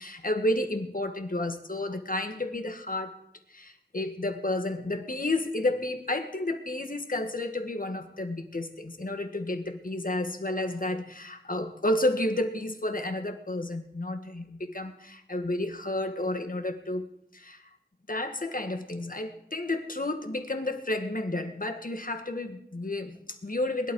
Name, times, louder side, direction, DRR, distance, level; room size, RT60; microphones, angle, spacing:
voice 1, 0.0-3.2 3.5-17.6 18.1-23.9, left 1 dB, 50° left, 6 dB, 1.7 m, -31 dB
21.0 x 12.0 x 4.7 m, 0.77 s
wide cardioid pair, 50°, 18 cm